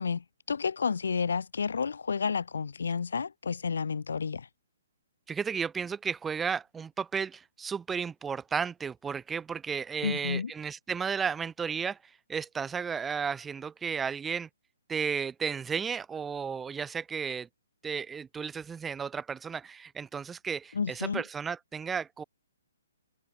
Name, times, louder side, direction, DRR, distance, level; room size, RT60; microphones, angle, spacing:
voice 1, 0.0-4.5 10.0-10.5 20.7-21.2, left 5 dB, 65° left, 1.9 m, -31 dB
voice 2, 5.3-12.0 12.3-14.5 14.9-17.5 17.8-22.2, right 6 dB, 10° right, 3.2 m, -33 dB
figure-of-eight pair, 130°, 0 cm